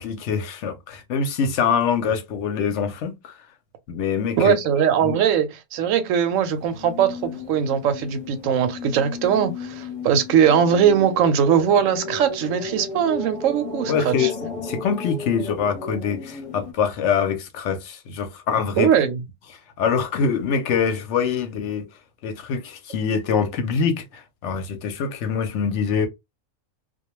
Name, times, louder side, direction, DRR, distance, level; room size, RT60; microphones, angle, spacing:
voice 1, 0.0-3.4 3.9-4.6 5.0-5.2 13.9-18.9 19.8-21.9 22.2-26.1, left 6 dB, 65° left, 0.8 m, -24 dB
voice 2, 4.4-14.3 18.8-19.2, right 8 dB, 70° right, 0.9 m, -20 dB
sound 1, 6.3-16.7, left 4 dB, 30° left, 0.8 m, -34 dB
2.3 x 2.2 x 2.9 m
omnidirectional pair, 1.5 m